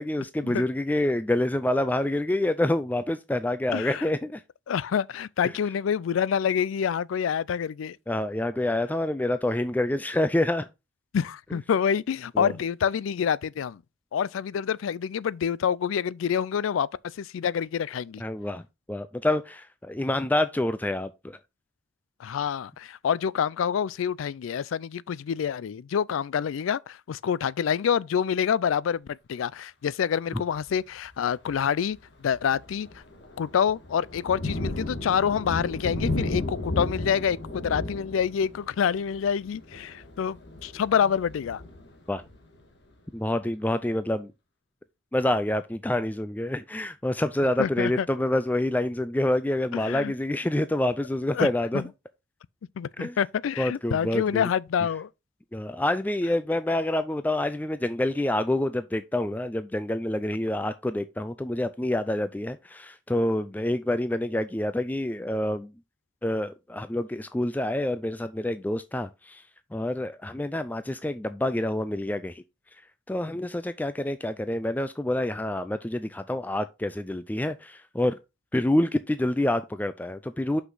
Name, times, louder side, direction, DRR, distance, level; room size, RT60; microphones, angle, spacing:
voice 1, 0.0-4.4 5.4-5.5 8.1-10.7 12.4-12.5 18.2-18.6 18.9-21.4 30.3-30.4 42.1-42.2 43.1-44.3 45.1-51.8 53.0-53.2 53.6-54.5 55.5-65.7 66.2-69.4 69.7-72.4 73.1-78.2 78.5-80.6, left 1 dB, 10° left, 0.3 m, -27 dB
voice 2, 3.7-4.1 4.7-8.0 11.1-13.8 14.1-18.2 22.2-33.0 33.4-41.6 47.6-48.1 49.7-50.1 51.3-51.5 51.7-51.9 52.8-55.1, left 7 dB, 90° left, 0.4 m, -27 dB
Thunder, 30.6-30.9 31.4-31.6 32.0-42.6, left 1 dB, 60° left, 1.6 m, -34 dB
5.9 x 5.7 x 3.8 m
head